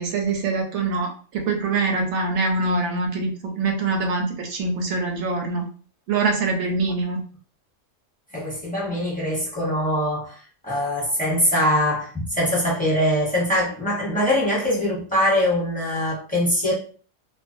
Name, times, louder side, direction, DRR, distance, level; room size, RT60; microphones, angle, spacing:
voice 1, 0.0-5.7 6.1-7.2, right 3 dB, 70° right, 0.8 m, -24 dB
voice 2, 8.3-16.7, left 1 dB, 5° left, 0.8 m, -23 dB
2.4 x 2.2 x 2.5 m
omnidirectional pair, 1.3 m